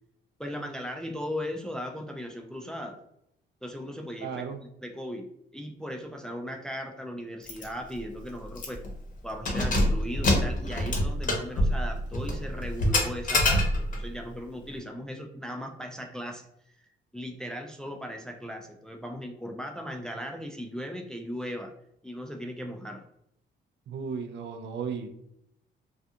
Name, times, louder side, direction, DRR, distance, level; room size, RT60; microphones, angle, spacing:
voice 1, 0.4-3.0 3.6-4.5 4.8-5.3 5.5-8.8 9.2-16.5 17.1-21.7 22.0-23.0, equal, 5° left, 3 dB, 0.3 m, -37 dB
voice 2, 4.2-4.6 23.9-25.1, right 6 dB, 60° right, 5 dB, 0.5 m, -35 dB
Keys jangling, 7.5-7.7 8.0-8.1 8.5-8.9 9.3-14.1, left 1 dB, 40° left, 0.8 m, -26 dB
2.3 x 2.3 x 2.7 m, 0.74 s
cardioid pair, 90°, 20 cm